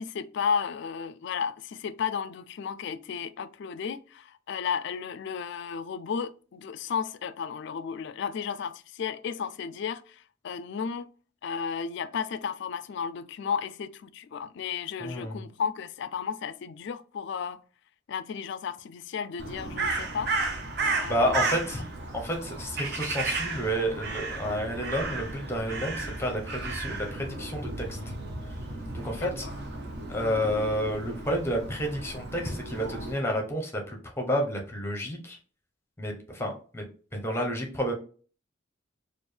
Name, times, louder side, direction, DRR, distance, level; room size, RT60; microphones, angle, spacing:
voice 1, 0.0-11.1 11.4-17.6 18.1-20.3 20.8-21.5 29.1-29.5, left 6 dB, 60° left, 0.3 m, -33 dB
voice 2, 15.0-15.4 21.0-21.8 22.1-28.0 28.9-29.5 30.1-35.4 36.0-36.8 37.1-37.9, equal, 15° left, 0.9 m, -30 dB
Crow, 19.4-33.1, right 3 dB, 55° right, 0.9 m, -34 dB
4.4 x 2.5 x 3.2 m
head